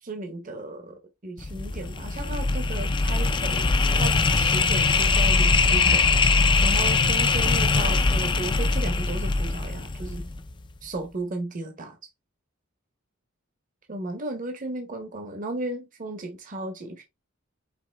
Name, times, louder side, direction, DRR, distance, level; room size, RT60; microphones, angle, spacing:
voice 1, 0.0-10.2 10.8-12.0 13.9-17.0, right 2 dB, 40° right, 0.8 m, -35 dB
sound 1, 1.4-10.5, left 4 dB, 20° left, 0.4 m, -22 dB
5.3 x 3.1 x 3.2 m
head